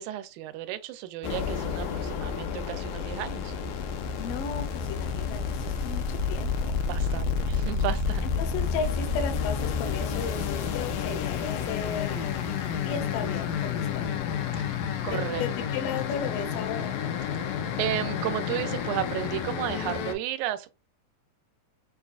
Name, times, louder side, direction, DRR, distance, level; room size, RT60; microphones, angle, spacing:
voice 1, 0.0-3.5 6.8-8.3 14.6-14.8 15.0-15.4 17.8-20.7, right 13 dB, 90° right, 2.0 m, -33 dB
sound 1, 1.2-20.1, left 6 dB, 90° left, 2.1 m, -30 dB
voice 2, 4.2-6.7 8.4-12.6 12.8-14.1 15.0-16.9, left 6 dB, 70° left, 1.6 m, -35 dB
6.7 x 2.3 x 2.4 m
omnidirectional pair, 3.3 m